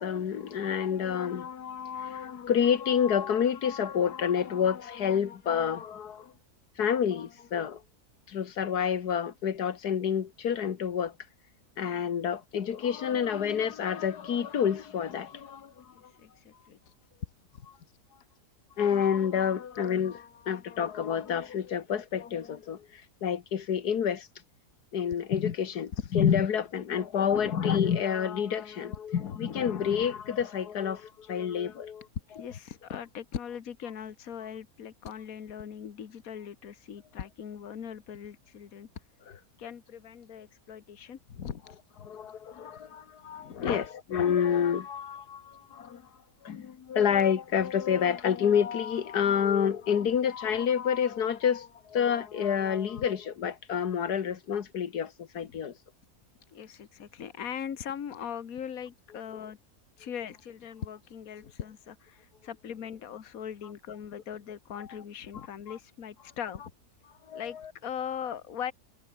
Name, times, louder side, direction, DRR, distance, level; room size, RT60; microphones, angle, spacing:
voice 1, 0.0-6.3 6.8-7.8 8.3-11.1 11.8-16.1 18.8-24.3 24.9-32.1 42.0-43.9 44.1-46.0 46.4-55.8 65.7-65.8 67.3-67.7, left 8 dB, 85° left, 1.9 m, -28 dB
voice 2, 15.9-16.8 27.3-27.6 29.2-29.9 32.3-38.9 39.6-41.8 43.3-43.9 53.0-53.1 55.4-55.5 56.5-59.6 60.0-66.6 67.3-67.6 67.8-68.7, left 8 dB, 65° left, 1.8 m, -40 dB
omnidirectional pair, 1.6 m